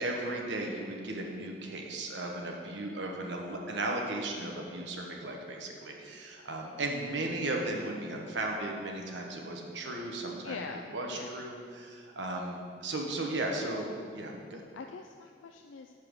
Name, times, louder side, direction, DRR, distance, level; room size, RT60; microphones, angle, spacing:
voice 1, 0.0-10.6 10.9-13.9 14.1-14.6, right 2 dB, 70° right, 1 dB, 1.1 m, -36 dB
voice 2, 10.4-11.3 13.6-13.8 14.5-15.9, left 4 dB, 85° left, 4 dB, 0.4 m, -43 dB
6.9 x 5.6 x 6.4 m, 2.2 s
head